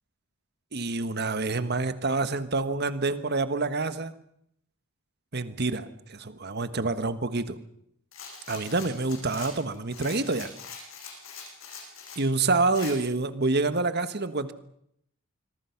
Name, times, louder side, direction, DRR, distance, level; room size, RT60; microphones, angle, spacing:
voice 1, 0.7-4.1 5.3-7.6 8.5-10.5 12.2-14.5, right 3 dB, 50° right, 12 dB, 1.4 m, -27 dB
Rattle, 8.1-12.2 12.7-13.0, left 5 dB, 70° left, 7.8 m, -43 dB
26.0 x 22.5 x 5.9 m, 0.73 s
head